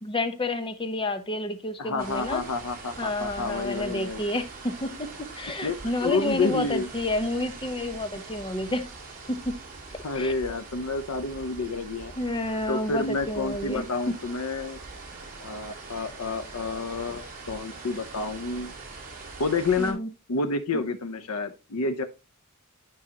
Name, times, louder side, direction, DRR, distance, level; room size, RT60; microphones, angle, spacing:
voice 1, 0.0-2.4 3.0-8.9 9.3-9.6 9.9-10.3 12.2-13.9 19.8-20.1, left 1 dB, 25° left, 9 dB, 0.8 m, -30 dB
voice 2, 1.8-4.2 5.6-5.8 6.0-6.9 10.0-12.1 12.7-14.8 15.4-18.7 19.4-20.0 20.3-22.0, left 3 dB, 80° left, 9 dB, 0.6 m, -29 dB
sound 1, 2.0-19.9, right 3 dB, 40° right, 2.7 m, -43 dB
9.7 x 5.6 x 2.8 m, 0.29 s
head